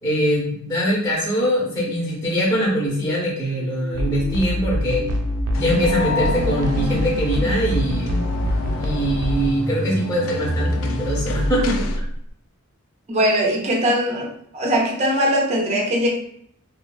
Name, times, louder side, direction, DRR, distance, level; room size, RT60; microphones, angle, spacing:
voice 1, 0.0-5.1 5.5-8.1 8.8-11.8, equal, 15° left, -5 dB, 0.7 m, -22 dB
sound 1, 2.2-12.3, equal, 80° left, 0.8 m, -31 dB
sound 2, 3.9-9.5, equal, 85° right, 0.4 m, -25 dB
sound 3, 5.5-12.0, left 4 dB, 65° left, 0.3 m, -31 dB
voice 2, 13.1-14.3 14.5-16.1, equal, 30° right, -1 dB, 0.5 m, -20 dB
3.0 x 2.1 x 2.3 m, 0.68 s
head